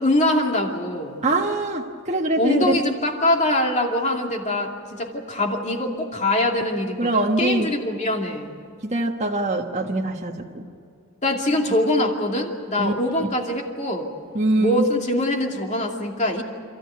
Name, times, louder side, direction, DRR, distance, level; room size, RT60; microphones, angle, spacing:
voice 1, 0.0-1.2 2.4-8.5 11.2-14.1 14.6-16.4, left 1 dB, 35° left, 2 dB, 2.5 m, -23 dB
voice 2, 1.2-2.8 7.0-7.7 8.8-10.7 12.8-12.9 13.2-13.3 14.3-14.8, right 2 dB, 35° right, 1 dB, 1.2 m, -23 dB
28.5 x 14.5 x 9.4 m, 2.4 s
head